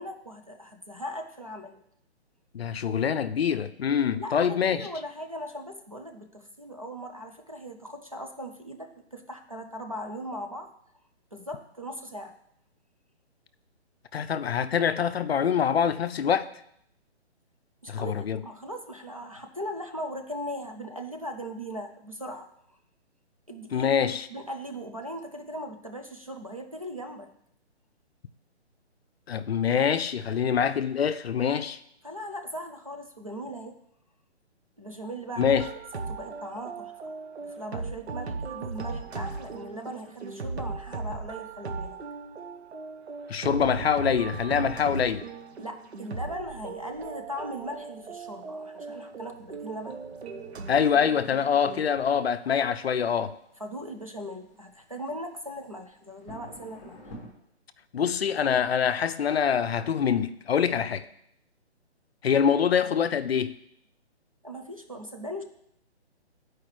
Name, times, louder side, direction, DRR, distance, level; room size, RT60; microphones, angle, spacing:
voice 1, 0.0-1.8 4.2-10.7 11.3-12.4 17.8-22.8 23.5-23.9 24.3-27.3 32.0-33.8 34.8-35.7 36.1-37.1 37.4-42.0 45.6-50.0 53.6-57.0 64.4-65.4, equal, 35° right, 0.4 m, -39 dB
voice 2, 2.5-4.9 14.1-16.5 17.9-18.4 23.7-24.3 29.3-31.8 35.4-35.7 43.3-45.3 50.7-53.3 57.9-61.0 62.2-63.6, left 7 dB, 65° left, 0.5 m, -25 dB
sound 1, 35.3-52.0, right 4 dB, 70° right, 0.9 m, -37 dB
sound 2, 47.5-57.3, equal, 10° left, 0.9 m, -52 dB
10.0 x 4.7 x 3.1 m
hypercardioid pair, 175°, 34 cm